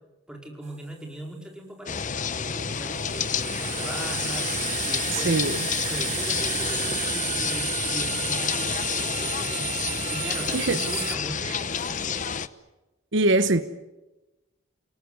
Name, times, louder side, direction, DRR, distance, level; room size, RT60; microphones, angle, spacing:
voice 1, 0.3-4.5 4.9-5.4 5.7-9.7 10.1-12.2, right 1 dB, 5° right, 1 dB, 4.9 m, -39 dB
sound 1, 0.7-0.8 2.8-11.2, right 9 dB, 35° right, 1.8 m, -32 dB
sound 2, 1.9-12.5, left 6 dB, 40° left, 0.9 m, -29 dB
voice 2, 5.1-5.7 10.5-10.8 11.4-11.6 13.1-13.6, right 2 dB, 65° right, 11 dB, 1.0 m, -23 dB
29.5 x 18.5 x 9.7 m, 1.0 s
head